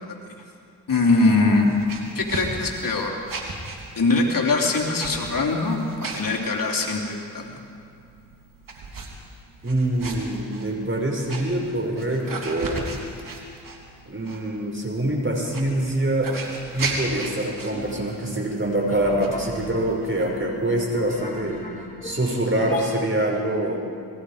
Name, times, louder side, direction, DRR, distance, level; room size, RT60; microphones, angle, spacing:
voice 1, 0.9-1.7 2.1-3.2 3.9-5.8 6.1-7.5, left 3 dB, 65° left, 0 dB, 3.2 m, -22 dB
sound 1, 1.5-21.1, right 3 dB, 65° right, 3.2 m, -37 dB
voice 2, 9.6-12.8 14.1-16.4 16.7-21.6 22.0-23.8, right 1 dB, 35° right, 0 dB, 5.9 m, -25 dB
sound 2, 17.7-23.0, left 1 dB, 25° left, 5.1 m, -38 dB
28.0 x 20.5 x 5.1 m, 2.3 s
cardioid pair, 45°, 35 cm